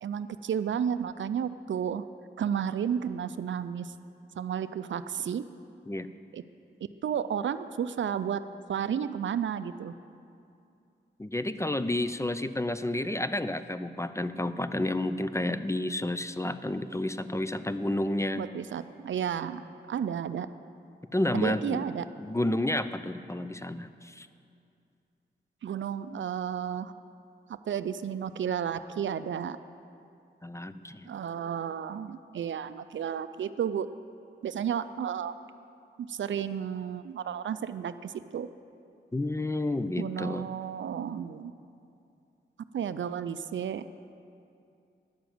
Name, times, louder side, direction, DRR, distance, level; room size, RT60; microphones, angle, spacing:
voice 1, 0.0-2.0 2.4-3.9 4.4-5.4 6.3-6.4 7.0-8.4 8.7-9.9 18.4-19.6 19.9-20.5 21.3-22.1 25.6-26.9 27.5-29.6 31.1-33.9 34.4-35.3 36.0-38.5 40.0-41.5 42.7-43.8, right 8 dB, 70° right, 13 dB, 0.4 m, -32 dB
voice 2, 11.2-18.4 21.1-21.9 22.2-24.3 30.4-31.1 39.1-40.5, left 1 dB, 15° left, 12 dB, 0.4 m, -30 dB
10.0 x 7.0 x 7.7 m, 2.5 s
cardioid pair, 55°, 20 cm